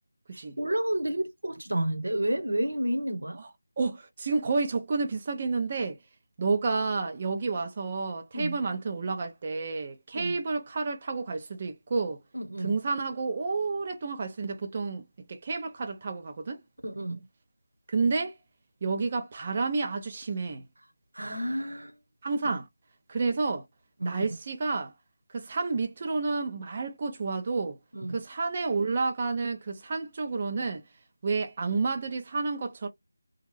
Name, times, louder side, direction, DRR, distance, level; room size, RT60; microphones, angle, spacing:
voice 1, 0.3-3.4 8.3-8.6 10.1-10.4 12.3-12.7 16.8-17.2 21.1-21.9 22.4-22.6 24.0-24.2 27.9-28.2, right 1 dB, 90° right, 1.0 m, -30 dB
voice 2, 3.8-6.0 6.4-12.2 12.6-16.6 17.9-18.4 18.8-20.6 22.2-22.6 23.1-23.7 24.0-24.9 25.3-27.8 28.1-30.8 31.2-32.9, right 4 dB, 30° right, 0.5 m, -30 dB
3.0 x 2.3 x 3.2 m
figure-of-eight pair, 170°, 0 cm